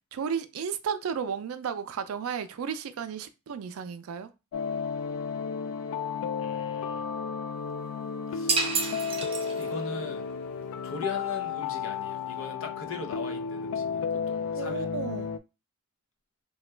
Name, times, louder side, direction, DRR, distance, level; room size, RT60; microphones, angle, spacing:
voice 1, 0.1-4.3 14.6-15.4, right 6 dB, 85° right, 0.4 m, -33 dB
sound 1, 4.5-15.4, left 6 dB, 90° left, 0.3 m, -33 dB
voice 2, 6.4-7.1 8.3-8.7 9.6-10.3 10.8-14.9, left 4 dB, 65° left, 0.7 m, -39 dB
sound 2, 8.5-10.0, right 4 dB, 25° right, 0.5 m, -29 dB
2.9 x 2.3 x 3.2 m
head